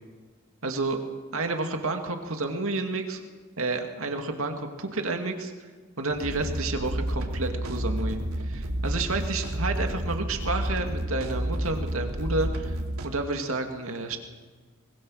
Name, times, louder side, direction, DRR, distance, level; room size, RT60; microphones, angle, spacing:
voice 1, 0.6-1.0 1.3-3.2 3.6-5.5 6.0-14.2, right 3 dB, 70° right, 5 dB, 2.2 m, -30 dB
sound 1, 6.1-13.0, right 1 dB, 85° right, 2.8 m, -30 dB
24.0 x 22.0 x 6.5 m, 1.4 s
head